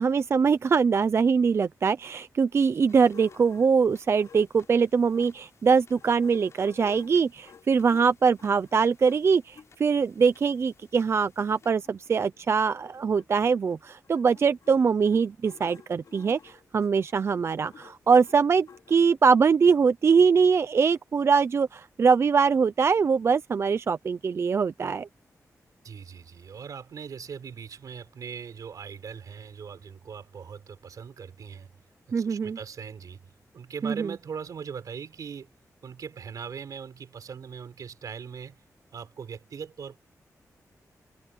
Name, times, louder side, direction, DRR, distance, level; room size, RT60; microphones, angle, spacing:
voice 1, 0.0-25.1 32.1-32.6 33.8-34.1, right 5 dB, 45° right, 0.5 m, -23 dB
sound 1, 2.9-11.7, left 5 dB, 50° left, 7.5 m, -62 dB
sound 2, 3.1-5.4 5.8-9.7 10.5-10.6 10.9-11.0 11.1-19.4, left 6 dB, 70° left, 2.8 m, -53 dB
voice 2, 25.8-31.7 32.1-33.2 33.5-35.5 35.8-38.6 38.9-40.0, right 6 dB, 75° right, 4.0 m, -40 dB
wide cardioid pair, 155°, 6 cm